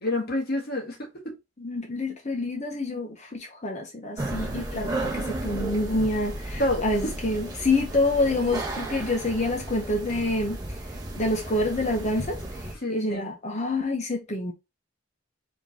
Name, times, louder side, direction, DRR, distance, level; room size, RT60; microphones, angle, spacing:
voice 1, 0.0-1.3 6.6-7.1 12.8-13.3, left 1 dB, 55° left, 1.8 m, -28 dB
voice 2, 1.6-10.6 11.1-12.4 12.9-14.5, left 2 dB, 35° left, 1.0 m, -27 dB
sound 1, 4.2-12.7, right 1 dB, 20° right, 1.2 m, -34 dB
4.8 x 3.8 x 2.9 m
head